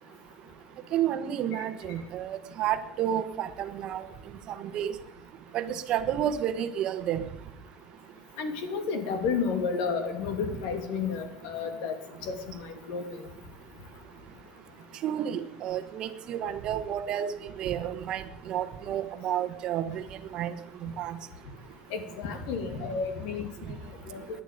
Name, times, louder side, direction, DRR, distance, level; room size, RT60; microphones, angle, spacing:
voice 1, 0.9-4.0 4.6-4.9 5.5-7.2 15.0-17.3 17.6-20.0 20.3-20.5 20.8-21.2, right 10 dB, 40° right, 9 dB, 1.1 m, -30 dB
voice 2, 8.4-13.3 21.9-23.5 24.0-24.2, left 5 dB, 75° left, 7 dB, 2.6 m, -32 dB
18.5 x 11.0 x 5.1 m, 0.84 s
cardioid pair, 175°, 2 cm